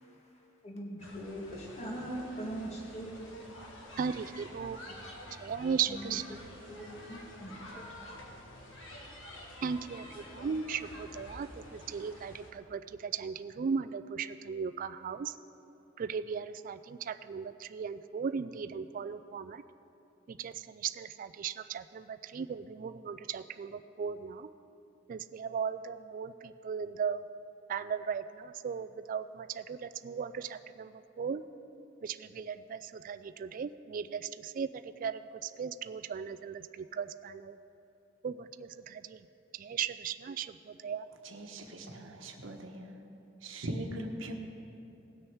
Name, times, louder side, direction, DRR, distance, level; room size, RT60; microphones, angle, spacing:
voice 1, 0.6-3.5 4.9-5.0 5.9-6.2 6.7-8.2, right 1 dB, 35° left, -2 dB, 1.8 m, -41 dB
sound 1, 1.0-12.5, left 1 dB, 80° left, 1.6 m, -49 dB
voice 2, 4.0-4.8 5.4-6.2 9.6-15.3 16.0-19.6 20.3-24.5 25.1-27.2 27.7-30.9 31.2-31.4 32.0-34.7 35.0-37.5 38.2-39.2 39.6-40.5 40.8-41.0, right 6 dB, 45° right, 11 dB, 0.3 m, -37 dB
voice 3, 41.2-42.9 43.4-44.3, right 1 dB, 85° right, 3 dB, 1.2 m, -40 dB
18.5 x 6.3 x 4.6 m, 2.8 s
head